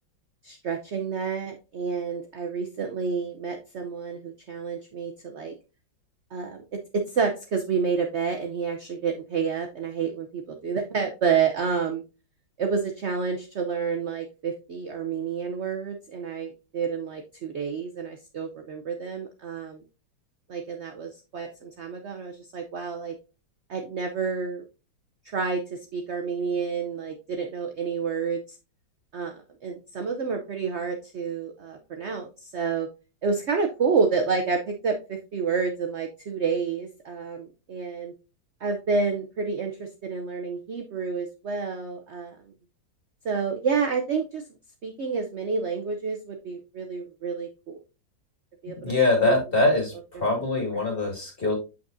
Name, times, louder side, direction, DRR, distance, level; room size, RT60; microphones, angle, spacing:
voice 1, 0.4-5.5 6.3-12.0 12.6-19.8 20.5-23.1 23.7-24.6 25.3-28.4 29.1-32.9 33.2-38.1 38.6-42.4 43.2-44.4 44.8-47.8 48.6-48.9 49.2-49.3 50.8-50.9, right 5 dB, 70° right, 3 dB, 0.6 m, -29 dB
voice 2, 48.8-49.9 50.2-51.5, left 2 dB, 30° left, 0 dB, 2.2 m, -23 dB
7.3 x 6.1 x 2.6 m, 0.30 s
omnidirectional pair, 2.1 m